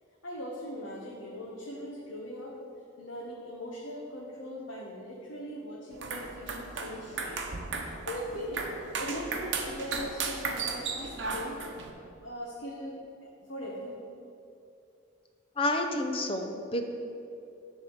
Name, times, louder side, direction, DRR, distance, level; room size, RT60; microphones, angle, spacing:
voice 1, 0.2-2.6 3.0-7.4 8.1-11.6 12.2-13.9, equal, 70° left, -4 dB, 1.1 m, -40 dB
sound 1, 5.9-11.9, right 4 dB, 60° right, 0.9 m, -35 dB
voice 2, 15.6-16.9, left 1 dB, 30° left, 5 dB, 0.6 m, -29 dB
10.0 x 3.7 x 7.2 m, 2.7 s
head